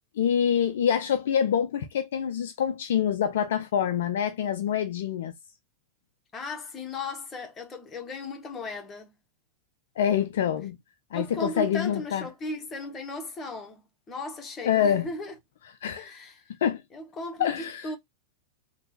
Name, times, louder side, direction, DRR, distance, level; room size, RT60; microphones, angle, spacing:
voice 1, 0.2-5.3 10.0-10.8 11.1-12.2 14.7-15.1 15.8-16.2 16.6-16.8 17.4-17.9, left 9 dB, 60° left, 0.3 m, -26 dB
voice 2, 6.3-9.1 11.1-13.8 14.1-15.4 15.9-16.4 16.9-18.0, left 2 dB, 20° left, 1.0 m, -36 dB
3.4 x 2.2 x 2.6 m
figure-of-eight pair, 90°, 0 cm